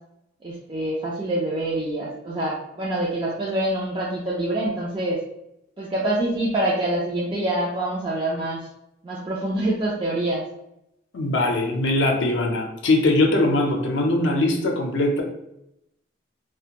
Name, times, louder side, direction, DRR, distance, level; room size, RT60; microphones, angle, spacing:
voice 1, 0.4-5.2 5.8-8.7 9.0-10.4, right 1 dB, 25° right, -6 dB, 0.4 m, -26 dB
voice 2, 11.1-15.2, left 2 dB, 75° left, 1 dB, 0.5 m, -21 dB
2.4 x 2.2 x 2.8 m, 0.82 s
head